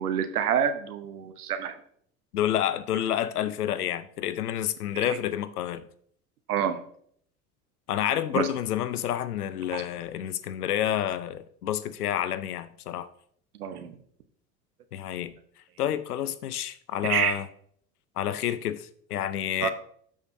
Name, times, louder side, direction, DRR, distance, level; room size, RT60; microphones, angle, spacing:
voice 1, 0.0-1.8 4.9-5.2 6.5-6.8 8.3-8.5 9.7-9.8 13.6-13.9 17.0-17.3 19.6-19.7, right 9 dB, 85° right, 1.0 m, -27 dB
voice 2, 2.3-5.9 7.9-13.1 14.9-15.4 15.8-17.5 18.2-19.7, left 11 dB, 85° left, 0.7 m, -29 dB
13.0 x 5.0 x 2.7 m
hypercardioid pair, 75°, 44 cm